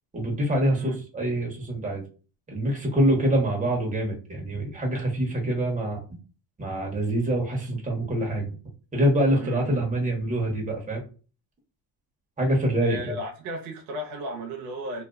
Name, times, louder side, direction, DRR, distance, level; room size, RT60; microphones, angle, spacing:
voice 1, 0.1-2.0 2.5-6.0 6.6-8.6 8.9-11.0 12.4-13.1, right 1 dB, 15° right, 1.0 m, -25 dB
voice 2, 9.4-9.9 12.8-15.0, right 1 dB, 85° right, 0.8 m, -35 dB
2.5 x 2.3 x 2.2 m
cardioid pair, 95°, 45 cm